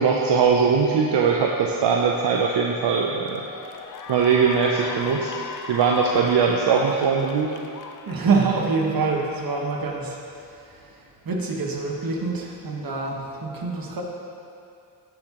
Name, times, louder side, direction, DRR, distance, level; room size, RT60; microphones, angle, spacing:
voice 1, 0.0-3.4 4.1-7.6, right 5 dB, 75° right, 0 dB, 0.7 m, -21 dB
Cheering / Applause, 3.2-9.7, left 5 dB, 50° left, 0.6 m, -38 dB
voice 2, 8.1-10.5 10.7-10.8 11.2-14.0, right 4 dB, 50° right, -1 dB, 1.5 m, -25 dB
13.0 x 6.0 x 3.0 m, 2.6 s
cardioid pair, 75°, 43 cm